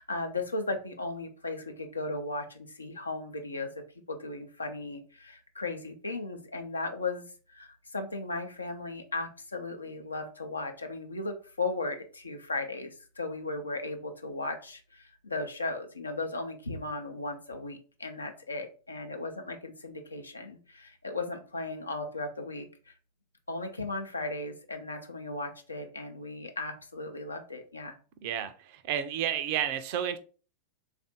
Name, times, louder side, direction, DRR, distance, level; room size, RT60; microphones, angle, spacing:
voice 1, 0.0-3.7 4.1-22.9 23.5-28.0, left 2 dB, 80° left, 0.6 m, -36 dB
voice 2, 28.2-30.2, right 10 dB, 45° right, 0.4 m, -31 dB
3.6 x 2.5 x 4.0 m
figure-of-eight pair, 90°, 0 cm